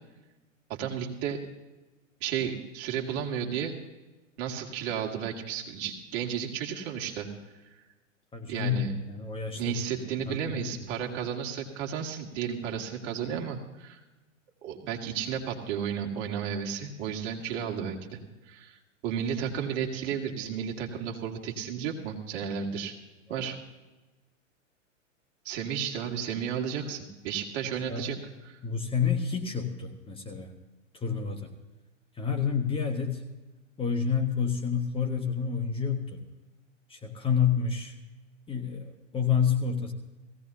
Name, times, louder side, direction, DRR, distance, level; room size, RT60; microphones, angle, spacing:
voice 1, 0.7-1.4 2.2-3.7 4.4-7.3 7.7-7.8 8.5-8.9 9.5-14.0 14.6-18.2 18.5-22.9 23.3-23.6 25.4-28.2 28.4-28.6, right 8 dB, 45° right, 1 dB, 2.5 m, -33 dB
voice 2, 8.3-9.8 10.3-10.9 23.3-23.6 27.9-28.1 28.6-30.5 30.9-31.5 32.1-33.2 33.8-36.2 36.9-37.9 38.5-39.9, left 7 dB, 15° left, 3 dB, 1.4 m, -29 dB
18.5 x 16.5 x 2.8 m, 1.1 s
hypercardioid pair, 115°, 38 cm